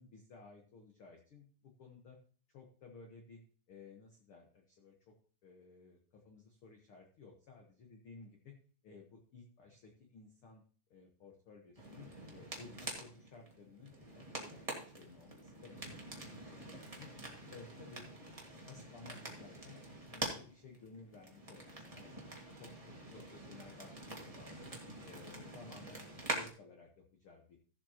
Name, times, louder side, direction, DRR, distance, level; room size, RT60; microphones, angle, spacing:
voice 1, 0.0-2.2 2.5-3.4 3.7-5.1 5.4-8.6 8.8-10.6 10.9-17.1 17.5-18.1 18.6-19.8 20.1-24.7 25.0-27.6, left 4 dB, 75° left, 2 dB, 1.2 m, -56 dB
sound 1, 11.7-26.5, right 1 dB, 35° right, 0.5 m, -46 dB
16.0 x 7.5 x 2.9 m, 0.43 s
omnidirectional pair, 4.3 m